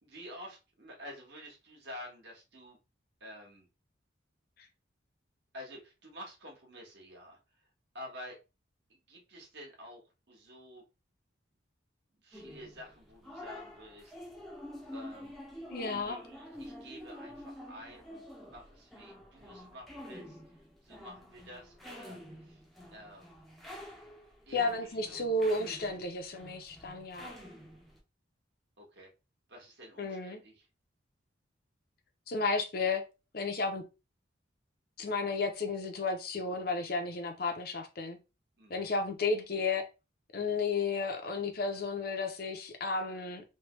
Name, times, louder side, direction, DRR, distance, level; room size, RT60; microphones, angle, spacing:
voice 1, 0.0-2.8 3.2-3.7 5.5-7.7 7.9-8.4 8.9-10.8 12.2-14.1 14.9-15.3 15.8-22.6 22.9-23.4 24.5-25.2 28.8-29.1 29.5-30.7 38.6-38.9, equal, 65° right, 1.3 m, -50 dB
sound 1, 12.3-28.0, equal, ahead, 0.5 m, -48 dB
voice 2, 15.7-16.2 24.5-27.3 30.0-30.4 32.3-33.0 33.3-33.8 35.0-38.2 38.7-39.9 40.3-43.4, left 3 dB, 50° left, 0.6 m, -33 dB
3.2 x 2.2 x 3.0 m
head